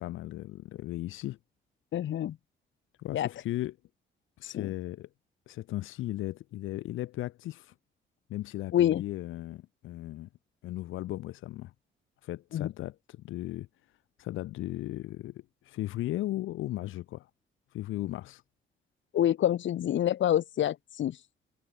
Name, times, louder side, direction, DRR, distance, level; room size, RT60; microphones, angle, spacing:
voice 1, 0.0-1.4 3.0-3.8 4.4-5.1 5.5-7.7 8.3-10.3 10.6-11.7 12.2-13.7 14.2-17.3 17.7-18.4, left 15 dB, 90° left, 4.9 m, -36 dB
voice 2, 1.9-2.4 3.1-3.3 4.5-4.7 8.7-9.0 12.5-12.7 19.1-21.2, left 11 dB, 70° left, 4.1 m, -27 dB
cardioid pair, 90°, 20 cm